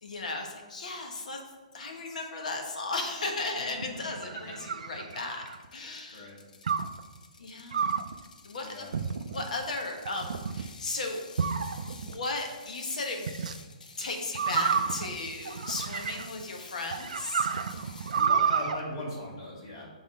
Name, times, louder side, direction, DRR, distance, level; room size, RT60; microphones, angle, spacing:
voice 1, 0.0-1.4 1.7-5.4 5.7-6.3 7.4-8.2 8.4-8.9 9.3-11.2 11.9-13.3 14.0-17.5, left 3 dB, 65° left, 2 dB, 1.2 m, -35 dB
sound 1, 3.8-5.7 6.7-7.0 7.7-8.1 8.9-9.5 10.1-10.7 11.4-12.2 13.3-13.6 14.4-16.4 16.9-18.8, right 6 dB, 65° right, 0.4 m, -30 dB
Ratchet pawl, 5.1-18.3, left 4 dB, 80° left, 0.8 m, -51 dB
voice 2, 6.1-6.4 8.6-8.9 18.1-19.8, left 1 dB, 35° left, -4 dB, 1.9 m, -39 dB
5.7 x 3.7 x 5.5 m, 1.3 s
hypercardioid pair, 180°, 4 cm